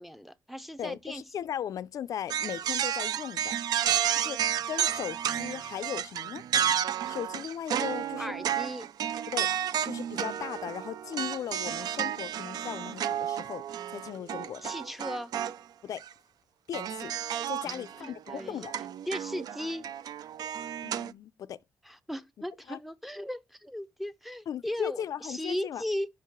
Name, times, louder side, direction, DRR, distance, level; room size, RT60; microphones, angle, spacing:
voice 1, 0.0-1.2 8.2-8.9 14.6-15.3 17.6-19.9 21.9-26.1, equal, ahead, 0.5 m, -37 dB
voice 2, 0.8-3.6 4.1-6.4 7.1-8.3 9.3-9.5 9.8-13.6 13.9-14.7 15.8-16.0 16.7-17.1 17.5-18.7 20.8-21.6 22.7-22.8 24.5-25.8, left 9 dB, 65° left, 0.4 m, -37 dB
sound 1, 2.3-15.6 16.0-16.1 16.7-21.1, right 10 dB, 80° right, 0.3 m, -32 dB
5.7 x 4.6 x 5.8 m
wide cardioid pair, 165°, 7 cm